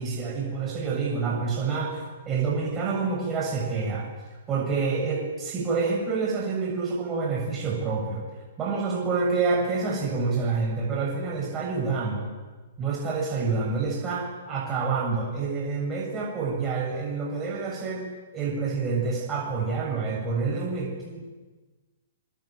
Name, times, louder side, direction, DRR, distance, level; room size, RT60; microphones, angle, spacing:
voice 1, 0.0-4.1 4.5-8.2 8.6-12.3 12.8-21.2, right 4 dB, 25° right, -2 dB, 7.1 m, -28 dB
26.0 x 22.5 x 9.2 m, 1.3 s
hypercardioid pair, 130°, 0 cm